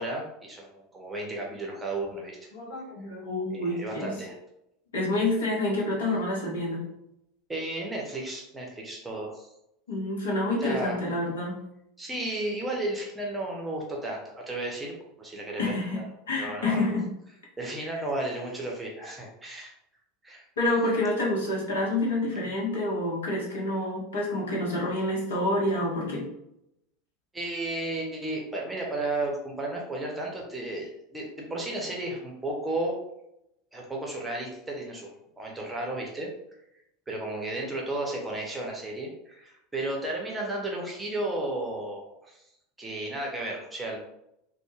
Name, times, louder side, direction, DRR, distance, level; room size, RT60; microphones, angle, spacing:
voice 1, 0.0-2.5 3.5-4.4 7.5-9.5 10.6-11.0 12.0-16.0 16.4-16.9 17.6-19.7 20.2-20.4 27.3-33.0 33.7-35.1 35.4-36.3 37.1-42.4 42.8-44.0, right 2 dB, 10° right, -1 dB, 0.7 m, -33 dB
voice 2, 2.5-4.1 4.9-6.8 9.9-11.6 15.6-16.0 16.3-17.1 20.6-26.3, left 1 dB, 70° left, -3 dB, 0.8 m, -28 dB
2.1 x 2.1 x 3.1 m, 0.81 s
figure-of-eight pair, 80°, 0 cm